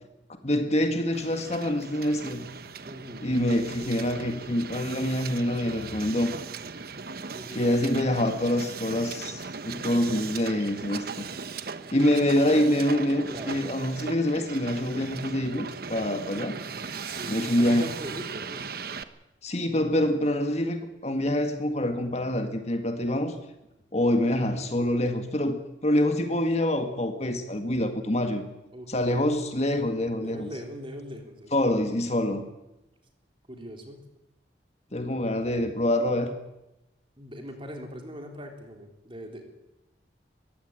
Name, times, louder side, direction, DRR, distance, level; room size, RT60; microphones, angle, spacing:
voice 1, 0.4-2.5 3.2-6.3 7.5-11.2 11.9-16.6 17.3-17.9 19.4-23.3 23.9-28.4 28.9-30.5 31.5-32.4 34.9-36.3, left 1 dB, 35° left, 7 dB, 1.9 m, -26 dB
Hiss, 1.1-19.0, right 5 dB, 55° right, 1.1 m, -38 dB
voice 2, 2.8-3.7 7.3-7.7 13.3-13.5 17.1-18.7 28.7-29.2 30.2-31.7 33.5-34.0 37.2-39.5, equal, 30° right, 3 dB, 3.8 m, -41 dB
22.0 x 16.0 x 9.0 m, 0.93 s
head